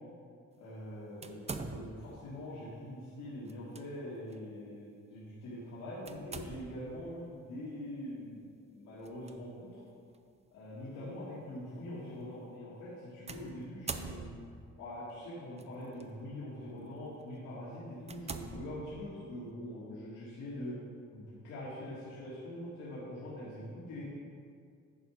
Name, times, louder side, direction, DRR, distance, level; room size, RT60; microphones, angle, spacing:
voice 1, 0.6-8.4 8.7-9.7 10.5-14.3 14.8-20.7 21.1-24.1, left 1 dB, 85° left, -9 dB, 1.9 m, -43 dB
sound 1, 1.2-2.2 3.5-3.8 4.3-4.4 6.1-6.9 9.0-9.3 10.1-10.2 13.3-14.7 15.6-16.0 16.6-16.8 17.3-17.4 18.0-19.3, right 4 dB, 20° right, 0.5 m, -43 dB
11.0 x 4.4 x 4.9 m, 2.3 s
cardioid pair, 90°, 30 cm